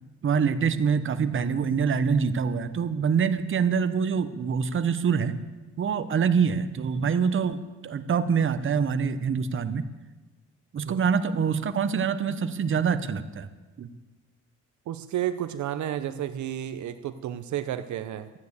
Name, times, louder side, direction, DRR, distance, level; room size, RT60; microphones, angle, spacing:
voice 1, 0.2-5.4 5.8-9.9 10.7-13.5 13.8-13.9, right 6 dB, 40° right, 11 dB, 0.9 m, -25 dB
voice 2, 14.9-18.3, right 11 dB, 70° right, 10 dB, 0.8 m, -31 dB
13.0 x 9.5 x 8.1 m, 1.2 s
cardioid pair, 90°, 30 cm